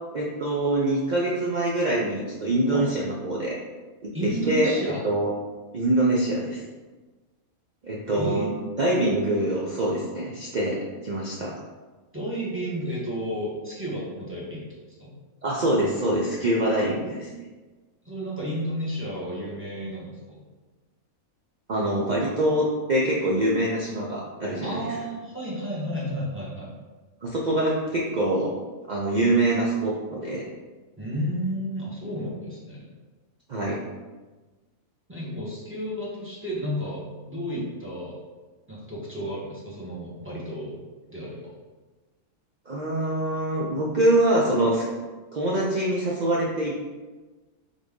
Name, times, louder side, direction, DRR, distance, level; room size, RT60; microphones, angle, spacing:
voice 1, 0.1-3.6 4.0-4.1 4.5-4.7 5.0-5.3 5.7-6.6 7.8-8.5 8.8-10.8 11.0-11.5 15.4-17.5 21.7-24.8 27.2-28.5 28.9-30.5 33.5-33.8 42.7-44.9 45.3-46.9, right 1 dB, 75° right, -4 dB, 0.4 m, -24 dB
voice 2, 4.1-5.0 8.1-8.7 12.1-15.1 18.0-20.4 24.6-26.7 31.0-32.9 35.1-38.2 38.7-40.8 41.1-41.4, equal, 10° right, -7 dB, 0.9 m, -32 dB
4.0 x 3.2 x 3.5 m, 1.3 s
omnidirectional pair, 1.5 m